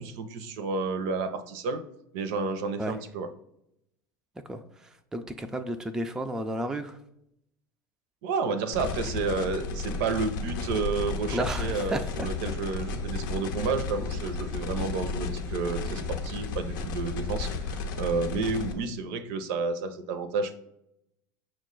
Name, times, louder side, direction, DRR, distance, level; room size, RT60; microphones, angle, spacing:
voice 1, 0.0-1.8 2.1-3.3 8.2-20.6, right 4 dB, 60° right, 10 dB, 0.5 m, -31 dB
voice 2, 5.1-7.0 11.3-12.3, right 1 dB, 5° right, 6 dB, 0.3 m, -32 dB
sound 1, 8.7-18.7, left 4 dB, 70° left, 0.6 m, -33 dB
5.9 x 2.2 x 3.7 m, 0.78 s
hypercardioid pair, 80°, 11 cm